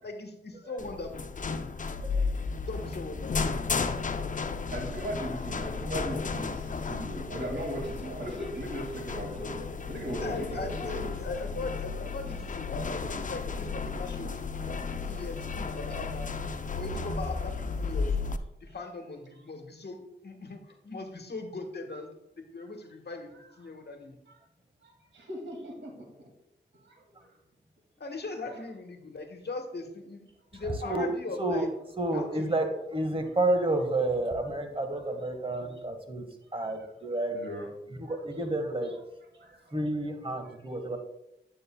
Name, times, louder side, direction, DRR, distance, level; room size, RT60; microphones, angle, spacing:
voice 1, 0.0-1.2 2.5-3.4 10.0-14.3 14.8-16.3 16.8-18.2 18.6-23.3 23.6-24.2 28.0-30.2 30.5-31.7 32.1-32.6, left 3 dB, 60° left, 4 dB, 1.3 m, -39 dB
sound 1, 0.8-18.4, left 4 dB, 45° left, 0.5 m, -34 dB
voice 2, 4.7-9.5 9.9-11.0 14.8-14.9 24.3-24.4 24.8-25.9 26.8-27.0 30.6-30.7 36.4-36.8 37.3-37.7 38.0-38.2 39.3-39.7, equal, 75° right, -1 dB, 2.3 m, -38 dB
voice 3, 32.0-37.4 38.1-39.0 39.7-41.0, right 2 dB, 30° right, 6 dB, 1.5 m, -30 dB
9.4 x 7.8 x 2.3 m, 0.88 s
cardioid pair, 45°, 19 cm